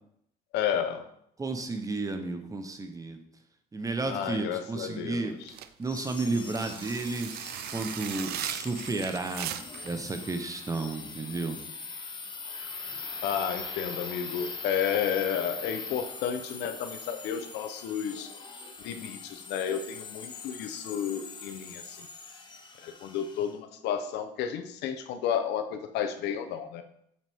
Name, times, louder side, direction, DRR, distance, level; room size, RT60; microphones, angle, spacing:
voice 1, 0.5-1.1 4.1-5.4 13.2-18.3 18.8-22.1 22.8-26.8, left 8 dB, 85° left, 8 dB, 0.8 m, -32 dB
voice 2, 1.4-3.2 3.7-5.3 5.8-7.3 7.7-9.5 9.8-11.6, right 3 dB, 20° right, 7 dB, 0.9 m, -32 dB
sound 1, 5.4-9.9, right 11 dB, 70° right, 0.5 m, -38 dB
sound 2, 5.8-23.5, left 4 dB, 25° left, 1.0 m, -42 dB
7.5 x 6.0 x 3.6 m, 0.74 s
cardioid pair, 110°, 17 cm